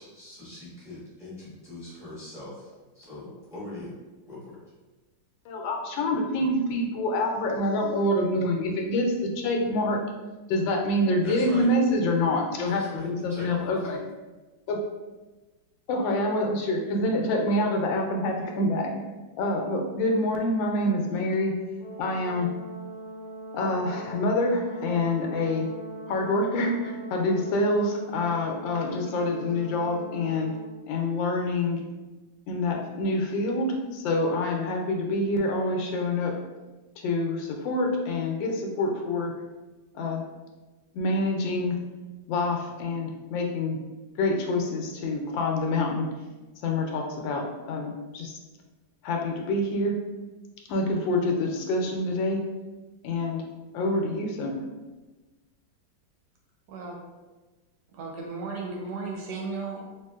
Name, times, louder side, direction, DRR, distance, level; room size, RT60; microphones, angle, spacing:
voice 1, 0.0-2.7 2.9-3.9 4.2-4.6 11.2-11.7 12.7-14.0, left 1 dB, 5° right, -9 dB, 0.5 m, -41 dB
voice 2, 5.5-10.0 10.5-14.0 14.7-14.8 15.9-18.9 19.4-21.5 22.0-22.5 23.5-25.7 26.1-30.5 30.9-31.8 32.5-36.3 37.0-39.3 39.9-40.2 40.9-41.8 42.3-43.8 44.2-46.1 46.6-48.4 49.0-49.9 50.7-52.4 53.0-53.4 53.7-54.7, left 1 dB, 85° left, 2 dB, 1.3 m, -26 dB
Brass instrument, 21.8-30.7, right 1 dB, 45° left, 0.6 m, -41 dB
voice 3, 56.7-57.0 57.9-60.0, right 4 dB, 75° right, 0 dB, 1.1 m, -35 dB
3.0 x 2.8 x 2.3 m, 1.2 s
omnidirectional pair, 2.0 m